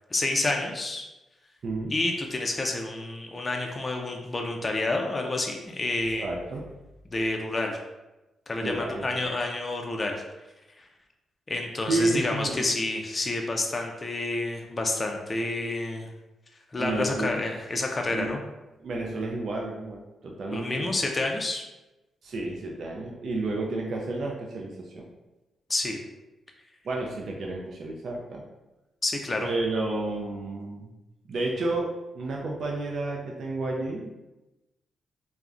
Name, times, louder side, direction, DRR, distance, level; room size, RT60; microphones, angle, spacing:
voice 1, 0.1-1.1 1.9-6.3 7.1-7.8 8.5-10.2 11.5-16.1 16.7-18.4 20.5-21.6 25.7-26.0 29.0-29.5, left 2 dB, 30° left, 2 dB, 0.4 m, -29 dB
voice 2, 6.2-6.6 8.6-9.3 11.9-12.6 16.8-17.4 18.1-18.4 18.8-20.9 22.2-25.1 26.8-28.4 29.4-30.9 31.3-31.9 32.1-34.1, right 2 dB, 65° right, -1 dB, 0.4 m, -31 dB
3.4 x 2.1 x 2.4 m, 1.0 s
cardioid pair, 70°, 0 cm